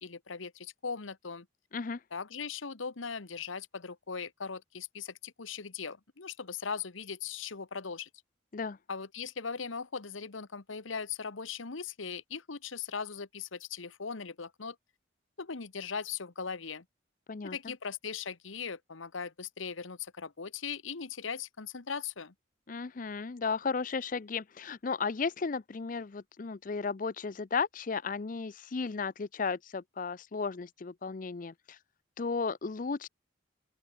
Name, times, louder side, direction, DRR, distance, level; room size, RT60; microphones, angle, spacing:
voice 1, 0.0-1.5 2.1-8.1 8.9-14.8 15.4-16.8 17.4-22.3, left 6 dB, 90° left, 1.2 m, -39 dB
voice 2, 22.7-31.8 32.2-33.1, left 4 dB, 45° left, 0.5 m, -34 dB
open air
head